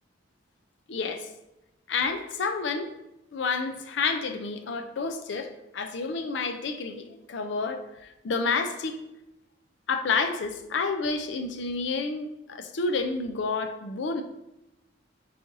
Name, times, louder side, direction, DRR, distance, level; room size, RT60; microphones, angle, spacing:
voice 1, 0.9-1.3 1.9-2.9 3.3-7.8 8.2-9.0 9.9-14.2, left 4 dB, 70° left, 7 dB, 0.4 m, -29 dB
4.2 x 2.6 x 3.8 m, 0.93 s
head